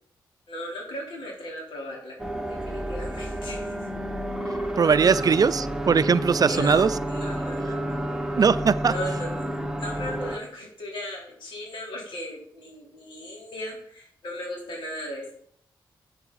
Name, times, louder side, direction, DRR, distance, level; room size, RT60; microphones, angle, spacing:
voice 1, 0.5-2.2 2.5-3.7 5.0-5.2 6.5-8.3 8.9-9.4 9.8-15.3, left 1 dB, 80° left, -3 dB, 3.9 m, -37 dB
sound 1, 2.2-10.4, right 1 dB, 5° right, 1.1 m, -30 dB
voice 2, 4.8-6.9 8.4-8.9, right 6 dB, 50° right, 16 dB, 0.5 m, -20 dB
8.9 x 7.4 x 4.1 m, 0.64 s
cardioid pair, 60°, 8 cm